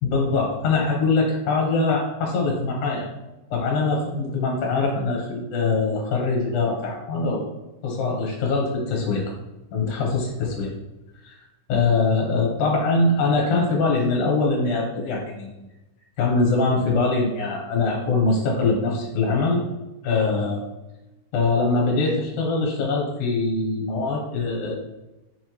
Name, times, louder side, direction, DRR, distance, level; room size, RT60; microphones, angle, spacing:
voice 1, 0.0-3.1 3.5-7.5 7.8-9.2 9.7-10.7 11.2-11.3 11.7-15.5 16.2-19.6 20.0-20.6 21.3-24.7, left 3 dB, 65° left, -1 dB, 2.4 m, -23 dB
6.2 x 3.3 x 4.5 m, 1.0 s
omnidirectional pair, 4.1 m